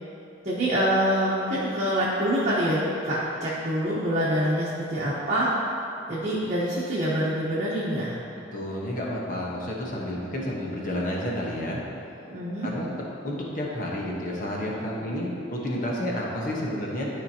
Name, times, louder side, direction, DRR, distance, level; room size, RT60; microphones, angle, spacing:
voice 1, 0.4-5.5 6.1-8.2 12.2-12.7, equal, 40° right, -9 dB, 1.2 m, -25 dB
voice 2, 8.5-11.8 12.6-17.1, left 1 dB, 45° left, -3 dB, 1.2 m, -30 dB
12.0 x 5.1 x 2.9 m, 2.7 s
head